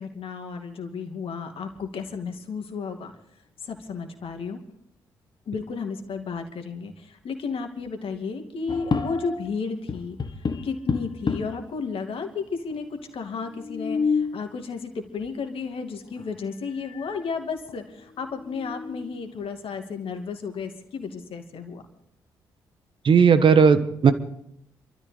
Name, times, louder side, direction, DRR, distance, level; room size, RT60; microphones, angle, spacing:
voice 1, 0.0-3.1 3.6-4.6 5.5-10.2 10.6-21.8, left 5 dB, 60° left, 5 dB, 2.5 m, -33 dB
sound 1, 8.7-9.5 9.9-11.7 12.4-12.5 12.7-12.8 13.5-14.4 16.2-16.3 16.8-17.3 17.7-17.8 18.3-19.2, left 5 dB, 45° left, 1.5 m, -29 dB
voice 2, 23.0-24.1, right 6 dB, 50° right, 11 dB, 1.4 m, -16 dB
29.5 x 13.5 x 3.4 m, 0.73 s
hypercardioid pair, 40°, 11 cm